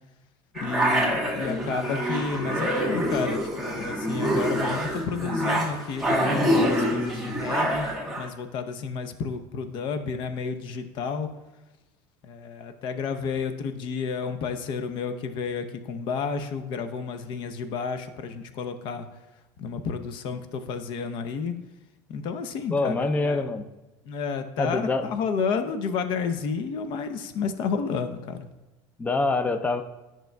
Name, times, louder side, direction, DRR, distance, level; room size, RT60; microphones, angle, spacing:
voice 1, 0.5-11.3 12.2-19.1 19.6-21.6 22.1-23.4 24.1-28.4, left 5 dB, 55° left, 9 dB, 0.7 m, -31 dB
sound 1, 0.5-8.3, equal, ahead, 1.6 m, -26 dB
voice 2, 22.7-23.7 24.6-25.1 29.0-29.8, left 3 dB, 15° left, 9 dB, 0.5 m, -25 dB
10.5 x 6.0 x 2.3 m, 1.1 s
supercardioid pair, 120°, 10 cm